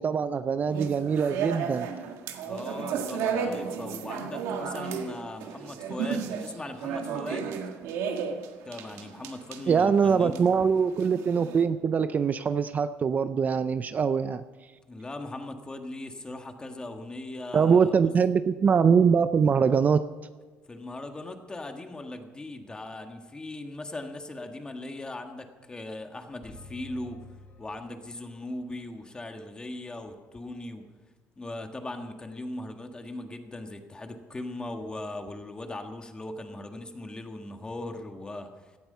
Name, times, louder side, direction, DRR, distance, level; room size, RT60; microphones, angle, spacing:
voice 1, 0.0-1.9 9.7-14.7 17.5-20.1, right 6 dB, 35° right, 12 dB, 0.5 m, -23 dB
sound 1, 0.7-11.7, right 6 dB, 85° right, 1.7 m, -33 dB
voice 2, 2.4-7.5 8.6-10.5 14.8-17.9 20.7-27.2 27.6-30.9 31.4-38.5, left 2 dB, 15° left, 5 dB, 1.6 m, -39 dB
sound 2, 26.4-28.5, left 2 dB, 35° left, 4.9 m, -49 dB
17.0 x 12.5 x 5.5 m, 1.3 s
cardioid pair, 125°, 5 cm